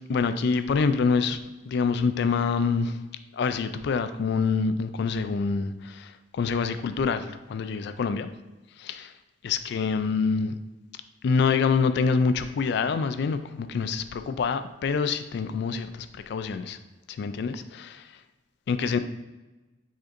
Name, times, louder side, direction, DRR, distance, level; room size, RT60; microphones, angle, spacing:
voice 1, 0.1-1.4 1.7-3.0 3.3-8.3 8.8-9.1 9.4-10.5 11.2-16.8 17.1-17.8 18.7-19.0, left 5 dB, 65° left, 10 dB, 0.3 m, -26 dB
4.9 x 4.3 x 2.5 m, 1.1 s
head